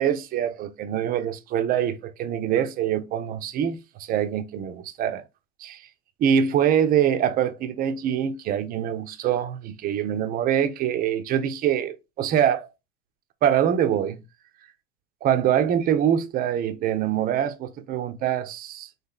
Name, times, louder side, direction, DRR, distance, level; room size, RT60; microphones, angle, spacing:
voice 1, 0.0-5.2 5.6-5.8 6.2-12.7 13.4-14.2 15.2-19.1, right 9 dB, 20° right, 0.4 m, -24 dB
4.2 x 2.7 x 3.7 m
figure-of-eight pair, 70°, 43 cm